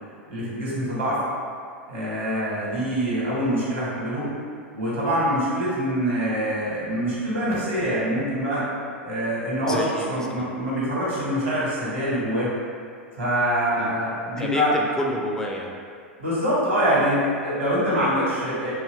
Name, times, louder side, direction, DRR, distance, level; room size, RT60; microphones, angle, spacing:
voice 1, 0.3-1.2 1.9-4.3 4.7-8.6 9.0-12.5 13.1-14.7 16.2-18.7, equal, 75° right, -8 dB, 1.1 m, -24 dB
voice 2, 9.6-10.5 13.8-13.9 14.4-15.8 17.9-18.1, left 1 dB, 10° left, 0 dB, 0.3 m, -30 dB
2.7 x 2.3 x 3.0 m, 2.2 s
figure-of-eight pair, 85°, 6 cm